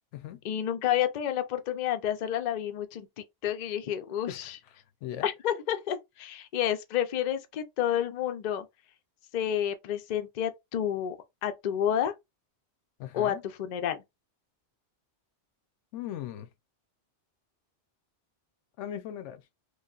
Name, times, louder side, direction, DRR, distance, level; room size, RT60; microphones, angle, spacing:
voice 1, 0.4-4.6 5.2-8.7 9.3-11.2 11.4-12.1 13.1-14.0, left 10 dB, 60° left, 0.5 m, -30 dB
voice 2, 13.0-13.4 15.9-16.5 18.8-19.4, left 11 dB, 90° left, 0.9 m, -38 dB
3.3 x 2.3 x 2.3 m
omnidirectional pair, 1.2 m